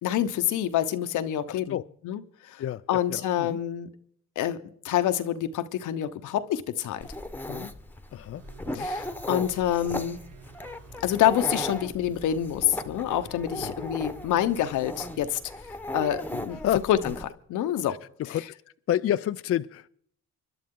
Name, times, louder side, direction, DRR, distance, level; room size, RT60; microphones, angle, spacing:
voice 1, 0.0-1.8 2.0-2.6 2.9-3.9 4.4-4.6 4.8-7.1 7.5-7.7 8.7-10.2 11.0-15.4 15.9-16.6 16.9-17.1 17.5-18.0 18.3-18.4, left 11 dB, 80° left, 10 dB, 1.0 m, -27 dB
voice 2, 1.5-1.8 2.6-3.6 8.1-8.9 13.6-13.7 16.6-16.8 18.3-18.4 18.9-19.9, left 11 dB, 50° left, 11 dB, 0.5 m, -29 dB
Dog, 7.0-17.2, left 1 dB, 5° left, 1.1 m, -37 dB
sound 1, 8.3-15.3, right 5 dB, 55° right, 2.2 m, -52 dB
25.0 x 11.5 x 3.8 m, 0.65 s
cardioid pair, 90°, 30 cm